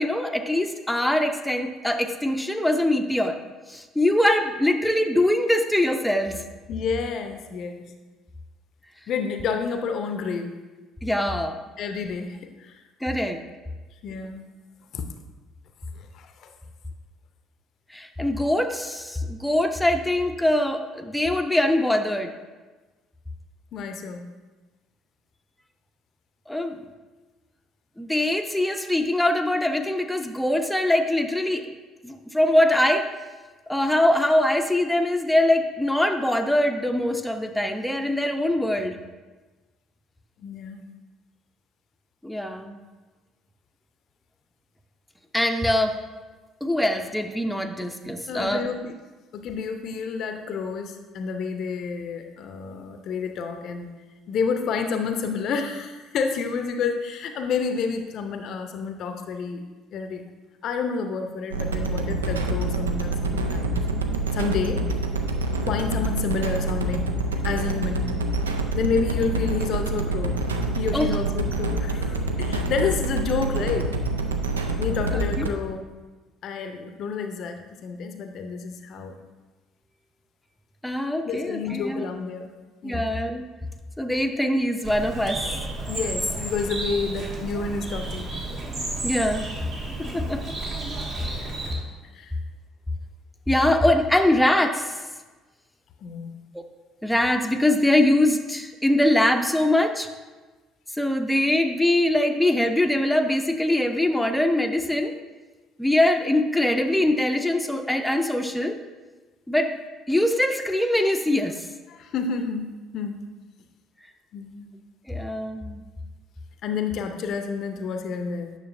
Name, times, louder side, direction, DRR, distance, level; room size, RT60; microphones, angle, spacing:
voice 1, 0.0-3.4 3.7-6.4 11.0-11.6 13.0-13.4 17.9-22.3 26.5-26.8 28.0-31.7 32.0-33.1 33.7-38.9 42.2-42.8 45.3-46.0 46.6-48.6 70.9-71.1 75.1-75.5 80.8-82.0 82.8-83.4 84.0-85.5 89.0-89.5 90.1-90.4 93.5-95.0 97.0-100.1 101.0-105.1 105.8-108.8 109.5-109.8 110.1-111.7 115.1-115.8, left 1 dB, 5° left, 4 dB, 0.6 m, -23 dB
voice 2, 6.7-7.9 9.1-10.6 11.8-12.8 14.0-14.5 14.9-15.1 16.0-16.5 23.7-24.2 40.4-40.8 48.3-48.9 49.3-53.9 54.3-59.6 59.9-60.3 60.6-63.8 64.3-64.8 65.6-67.1 67.4-68.1 68.7-70.4 70.8-73.9 74.8-75.8 76.4-79.2 81.2-82.5 82.8-83.1 85.9-88.4 91.4-91.5 92.1-92.3 96.0-96.3 111.9-113.3 114.3-114.7 116.6-118.5, left 5 dB, 50° left, 6 dB, 0.6 m, -29 dB
sound 1, 61.5-75.5, right 2 dB, 80° right, 0.4 m, -26 dB
Bird, 84.8-91.7, right 2 dB, 50° right, 1.6 m, -32 dB
9.5 x 6.3 x 2.6 m, 1.3 s
figure-of-eight pair, 50°, 0 cm